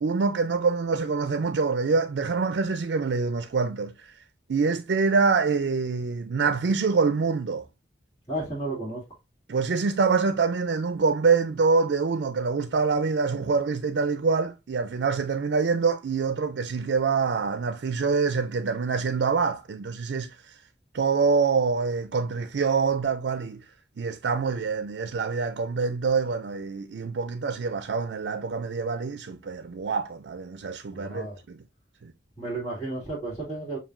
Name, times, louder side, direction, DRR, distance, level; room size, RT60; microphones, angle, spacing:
voice 1, 0.0-4.1 4.5-7.7 9.5-20.6 20.9-23.6 24.0-31.6 32.0-32.1, right 4 dB, 70° right, 0.4 m, -25 dB
voice 2, 8.3-9.0 30.9-31.4 32.4-33.8, right 2 dB, 20° left, 2.1 m, -32 dB
7.0 x 2.6 x 2.5 m
head